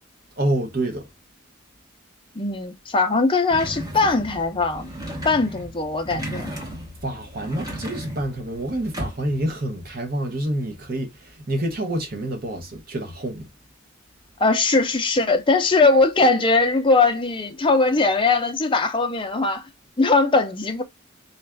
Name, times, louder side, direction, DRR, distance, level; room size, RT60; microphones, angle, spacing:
voice 1, 0.4-1.1 7.0-13.5, right 1 dB, 45° right, 0.8 m, -27 dB
voice 2, 2.3-4.9 5.2-6.5 14.4-19.7 20.0-20.8, left 3 dB, 25° left, 0.5 m, -20 dB
sound 1, 3.5-9.5, equal, 20° right, 1.0 m, -35 dB
4.1 x 2.4 x 3.3 m
head